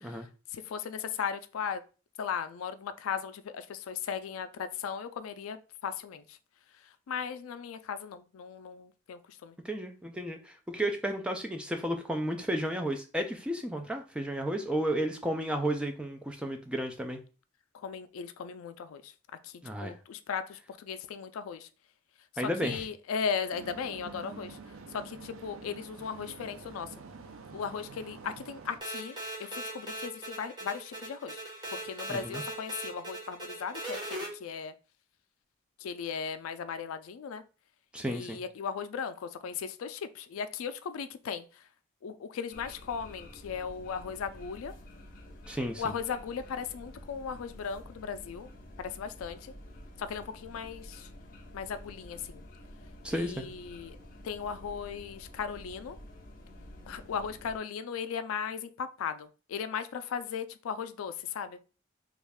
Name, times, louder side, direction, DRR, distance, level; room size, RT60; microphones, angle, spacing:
voice 1, 0.0-1.8 2.2-6.4 6.7-9.6 17.7-19.1 19.4-21.7 22.6-24.6 24.9-27.0 27.5-31.4 31.7-34.7 35.8-37.4 38.1-41.7 42.0-44.7 45.8-48.5 48.8-49.5 50.0-51.1 51.5-52.4 53.1-54.0 54.2-56.0 56.9-61.6, left 6 dB, 85° left, 12 dB, 0.3 m, -37 dB
voice 2, 9.6-17.2 19.6-20.0 22.4-22.8 32.1-32.4 37.9-38.4 45.5-45.8 53.0-53.4, right 1 dB, 5° right, 5 dB, 0.3 m, -33 dB
sound 1, 23.5-28.8, right 4 dB, 80° right, 0.4 m, -47 dB
sound 2, 28.8-34.3, right 1 dB, 20° right, 1.0 m, -40 dB
sound 3, 42.5-57.6, left 1 dB, 40° left, 0.7 m, -50 dB
3.1 x 2.4 x 3.4 m, 0.34 s
head